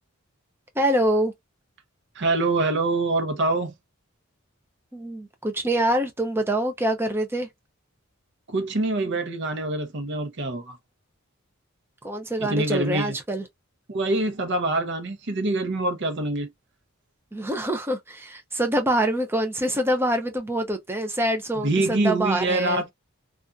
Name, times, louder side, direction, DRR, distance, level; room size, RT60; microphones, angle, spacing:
voice 1, 0.8-1.3 4.9-7.5 12.0-13.4 17.3-22.8, right 1 dB, 10° right, 0.5 m, -25 dB
voice 2, 2.1-3.8 8.5-10.8 12.4-13.2 13.9-16.5 21.6-22.9, right 2 dB, 55° right, 0.7 m, -25 dB
2.6 x 2.4 x 2.2 m
head